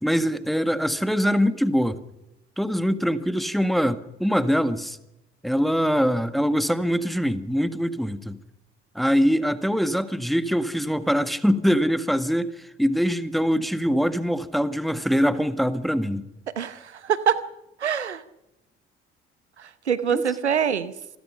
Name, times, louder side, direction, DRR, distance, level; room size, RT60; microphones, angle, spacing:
voice 1, 0.0-2.0 2.6-5.0 5.4-8.4 8.9-16.3 20.1-20.2, equal, ahead, 1.7 m, -23 dB
voice 2, 16.6-17.4 17.8-18.2 19.6-20.9, right 8 dB, 80° right, 0.9 m, -24 dB
28.0 x 21.0 x 5.7 m
figure-of-eight pair, 50°, 33 cm